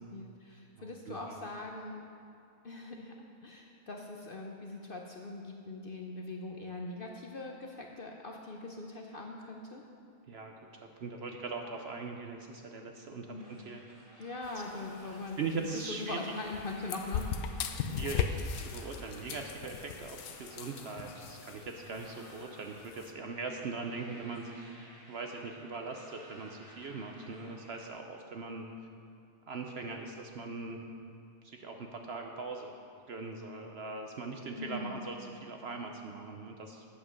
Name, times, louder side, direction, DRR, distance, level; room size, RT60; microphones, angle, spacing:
voice 1, 0.0-2.1 2.6-3.1 3.4-9.8 13.3-13.6 14.2-17.5 17.8-18.1 34.6-35.0, left 2 dB, 50° left, 1 dB, 0.7 m, -42 dB
voice 2, 0.7-1.4 10.3-10.5 10.8-13.8 15.4-16.2 18.0-28.7 29.5-30.8 31.4-32.8 33.1-36.8, right 4 dB, 60° right, 3 dB, 0.7 m, -41 dB
sound 1, 13.4-27.9, right 1 dB, 20° right, 1.5 m, -57 dB
sound 2, 14.4-23.1, left 7 dB, 90° left, 1.1 m, -39 dB
8.6 x 7.4 x 6.4 m, 2.5 s
omnidirectional pair, 1.5 m